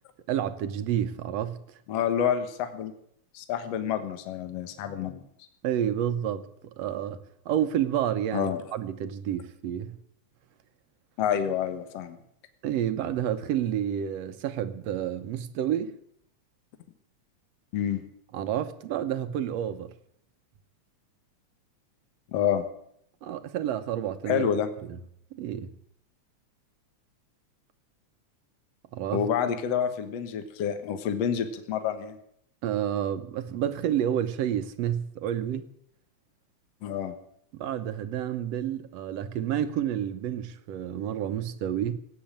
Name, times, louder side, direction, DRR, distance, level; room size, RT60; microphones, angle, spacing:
voice 1, 0.3-1.6 5.6-6.5 6.8-10.0 12.6-16.0 18.3-19.9 23.2-24.5 24.9-25.0 25.3-25.7 28.9-29.3 32.6-35.7 37.5-42.0, right 10 dB, 70° right, 1.8 m, -29 dB
voice 2, 1.9-2.9 3.3-5.2 8.3-8.6 11.2-12.2 17.7-18.0 22.3-22.7 24.3-24.7 29.1-32.2 36.8-37.1, left 8 dB, 60° left, 2.3 m, -28 dB
17.5 x 8.9 x 8.8 m
omnidirectional pair, 3.5 m